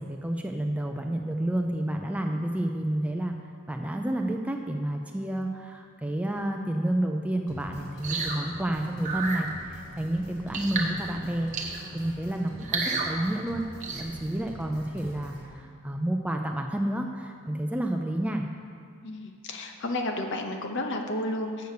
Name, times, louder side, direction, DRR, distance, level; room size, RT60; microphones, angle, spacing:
voice 1, 0.0-3.4 3.7-11.5 11.9-13.7 14.0-18.4, right 1 dB, 5° right, 3 dB, 0.4 m, -30 dB
sound 1, 7.5-15.5, equal, 85° left, 2.5 m, -45 dB
sound 2, 8.0-8.4 9.0-9.4 10.5-10.9 11.5-11.9 12.6-13.1 13.8-14.0, right 4 dB, 35° right, 1.1 m, -30 dB
voice 2, 19.0-21.7, left 1 dB, 55° left, 4 dB, 0.8 m, -32 dB
7.9 x 6.8 x 6.6 m, 2.2 s
head